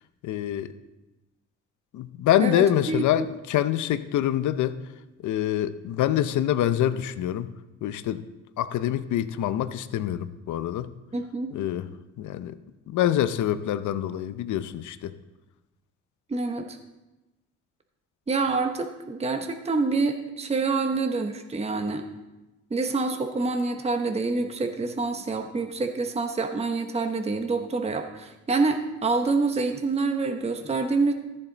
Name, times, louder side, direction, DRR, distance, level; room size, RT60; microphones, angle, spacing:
voice 1, 0.2-0.7 1.9-4.8 5.2-7.5 7.8-8.2 8.6-10.9 11.5-11.9 12.2-12.6 12.9-15.1, left 11 dB, 75° left, 13 dB, 0.7 m, -25 dB
voice 2, 2.4-3.0 11.1-11.5 16.3-16.8 18.3-22.0 22.7-31.1, right 3 dB, 20° right, 5 dB, 0.9 m, -27 dB
14.0 x 7.3 x 4.0 m, 1.0 s
cardioid pair, 90°, 30 cm